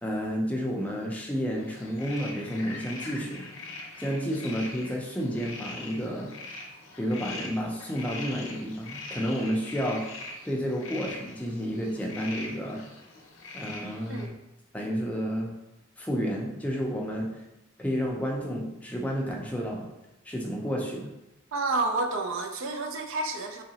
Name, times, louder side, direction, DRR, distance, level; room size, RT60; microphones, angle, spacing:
voice 1, 0.0-3.5 4.0-6.3 7.0-10.0 10.4-12.8 13.5-14.3 14.7-15.5 16.0-17.3 17.8-19.8 20.2-21.1, equal, 5° left, -2 dB, 0.4 m, -31 dB
sound 1, 1.6-14.3, left 2 dB, 75° left, 0.7 m, -42 dB
voice 2, 21.5-23.6, right 3 dB, 70° right, 5 dB, 0.4 m, -29 dB
3.7 x 3.1 x 2.8 m, 0.96 s
head